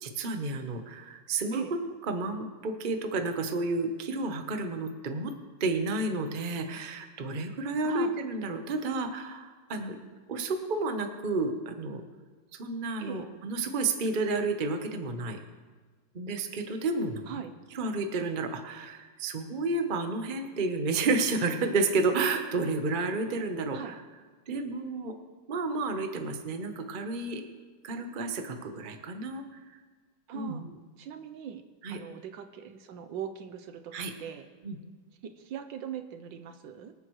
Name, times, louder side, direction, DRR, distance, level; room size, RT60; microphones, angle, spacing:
voice 1, 0.0-1.6 2.1-5.3 5.6-10.0 10.3-12.0 12.6-15.4 16.1-17.2 17.7-24.0 24.5-25.2 25.5-27.4 27.8-29.4 30.3-30.7 31.8-32.0 33.9-34.1 34.6-34.8, right 3 dB, 35° right, 5 dB, 0.9 m, -31 dB
voice 2, 7.8-8.1 13.0-13.2 17.3-17.5 23.7-24.0 30.3-30.6 31.0-31.6 31.9-33.9 34.2-34.5 35.2-36.9, right 8 dB, 75° right, 8 dB, 1.4 m, -39 dB
25.0 x 8.9 x 3.2 m, 1.4 s
omnidirectional pair, 2.1 m